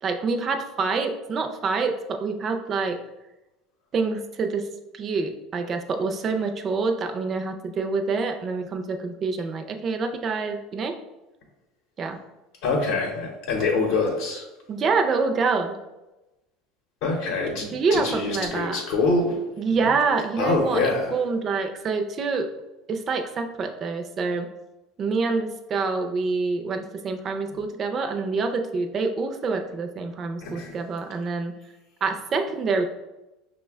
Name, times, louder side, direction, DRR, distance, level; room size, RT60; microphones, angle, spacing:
voice 1, 0.0-3.0 3.9-10.9 12.0-12.2 14.7-15.8 17.6-18.8 19.6-22.5 22.9-24.5 25.0-31.5 32.0-32.8, right 4 dB, 25° right, 5 dB, 0.4 m, -26 dB
voice 2, 12.6-14.4 17.0-19.4 20.4-21.1 30.4-30.8, left 3 dB, 60° left, 0 dB, 0.7 m, -25 dB
5.5 x 2.1 x 3.4 m, 1.0 s
cardioid pair, 165°, 0 cm